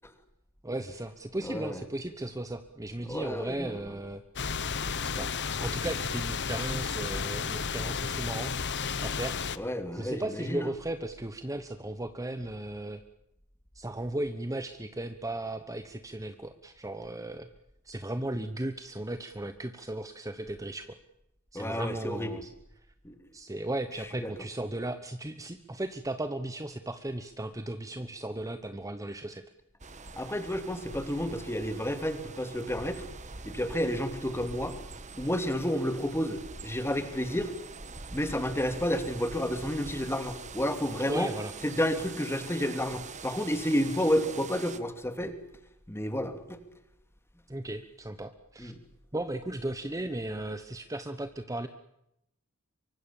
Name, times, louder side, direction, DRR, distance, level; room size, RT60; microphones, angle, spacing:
voice 1, 0.6-4.2 5.0-5.3 5.6-8.5 9.0-9.4 9.9-13.0 13.7-17.5 17.8-21.0 21.5-22.5 23.3-29.4 41.0-41.5 47.5-48.7 49.1-51.7, right 1 dB, 15° right, 9 dB, 1.1 m, -36 dB
voice 2, 1.4-1.8 3.1-3.8 9.6-10.7 21.5-22.3 23.0-23.1 24.2-24.3 30.1-33.0 33.4-34.8 35.2-37.5 38.1-41.3 41.6-45.4 45.9-46.6 48.6-48.7, equal, 10° left, 8 dB, 2.7 m, -31 dB
sound 1, 4.4-9.6, left 5 dB, 55° left, 1.2 m, -32 dB
sound 2, 29.8-44.8, right 4 dB, 35° right, 1.4 m, -44 dB
24.5 x 24.5 x 7.2 m, 0.82 s
head